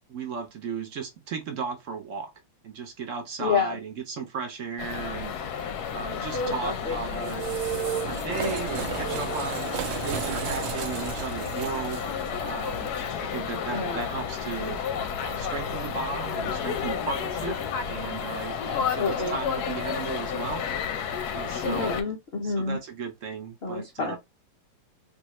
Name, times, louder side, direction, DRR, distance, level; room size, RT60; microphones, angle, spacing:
voice 1, 0.1-2.3 2.6-7.5 8.0-12.0 12.4-12.9 13.2-17.6 17.9-21.9 22.4-24.2, right 5 dB, 60° right, 0.8 m, -35 dB
voice 2, 3.4-3.8 6.3-7.3 8.3-8.7 13.7-14.0 18.7-19.4 21.6-22.8 23.6-24.2, left 4 dB, 85° left, 0.5 m, -29 dB
sound 1, 4.8-22.0, left 7 dB, 70° left, 1.0 m, -32 dB
sound 2, 6.5-17.9, right 9 dB, 85° right, 1.3 m, -36 dB
3.5 x 2.6 x 3.0 m
omnidirectional pair, 2.0 m